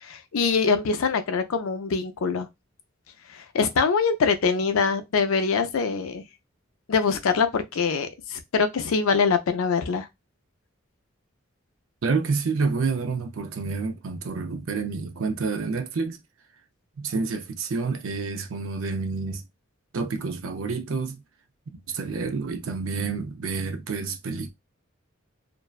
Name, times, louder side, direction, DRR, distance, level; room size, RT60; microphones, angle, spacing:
voice 1, 0.0-2.5 3.3-6.2 6.9-10.1, left 5 dB, 85° left, 0.5 m, -24 dB
voice 2, 12.0-16.2 17.0-19.4 19.9-21.2 21.9-24.5, right 4 dB, 80° right, 0.5 m, -28 dB
2.6 x 2.1 x 2.3 m
head